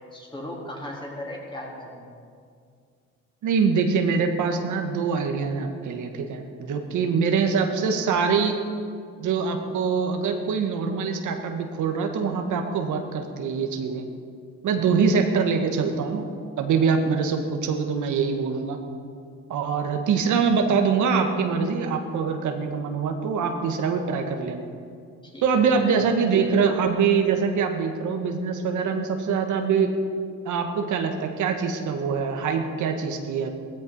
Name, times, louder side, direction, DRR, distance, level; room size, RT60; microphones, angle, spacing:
voice 1, 0.1-2.1 6.7-7.1 14.6-15.0 25.2-25.9, left 1 dB, 15° left, -2 dB, 3.9 m, -38 dB
voice 2, 3.4-8.5 9.2-14.1 14.6-16.2 16.6-18.8 19.5-24.7 25.4-29.9 30.4-33.5, right 5 dB, 80° right, 4 dB, 1.6 m, -24 dB
16.5 x 14.0 x 5.5 m, 2.3 s
cardioid pair, 90°, 30 cm